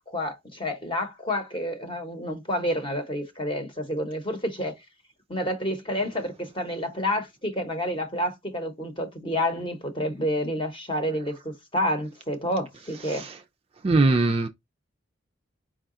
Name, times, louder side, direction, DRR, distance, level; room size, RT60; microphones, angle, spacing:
voice 1, 0.0-4.7 5.3-13.2, equal, 25° left, 0.9 m, -29 dB
voice 2, 13.8-14.5, right 3 dB, 30° right, 0.3 m, -20 dB
4.7 x 2.3 x 3.7 m
head